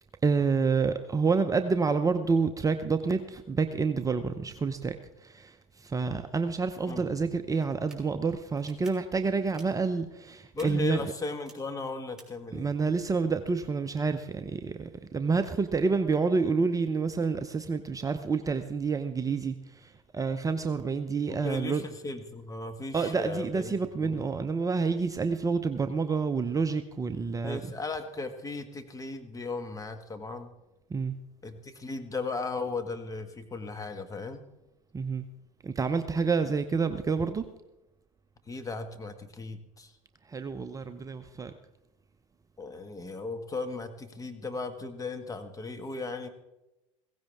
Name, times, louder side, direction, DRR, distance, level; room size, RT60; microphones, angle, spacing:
voice 1, 0.2-11.1 12.5-21.8 22.9-27.6 30.9-31.1 34.9-35.3 35.6-37.5 40.2-41.5, right 4 dB, 20° right, 8 dB, 0.7 m, -28 dB
sound 1, 7.7-8.0 8.5-8.9 9.4-9.7 10.6-10.7 11.3-11.5 12.2-12.3, right 3 dB, 5° right, 3.5 m, -51 dB
voice 2, 10.5-12.7 21.3-24.2 27.4-30.5 31.4-34.4 38.5-39.9 42.6-46.3, left 3 dB, 20° left, 7 dB, 1.6 m, -36 dB
16.5 x 15.5 x 3.5 m, 0.95 s
hypercardioid pair, 85°, 17 cm